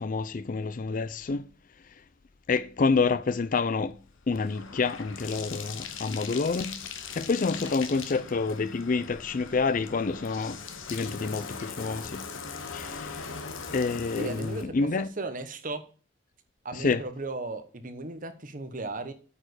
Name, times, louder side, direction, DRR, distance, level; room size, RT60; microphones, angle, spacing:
voice 1, 0.0-1.4 2.5-4.0 4.3-6.8 7.2-10.6 10.9-12.3 12.7-13.3 13.7-15.1 16.7-17.0, left 4 dB, 40° left, 0.4 m, -28 dB
Bathtub (filling or washing), 3.3-14.6, left 5 dB, 80° left, 1.0 m, -40 dB
voice 2, 14.2-15.8 16.6-19.1, right 2 dB, 40° right, 1.0 m, -36 dB
8.7 x 5.0 x 6.3 m
head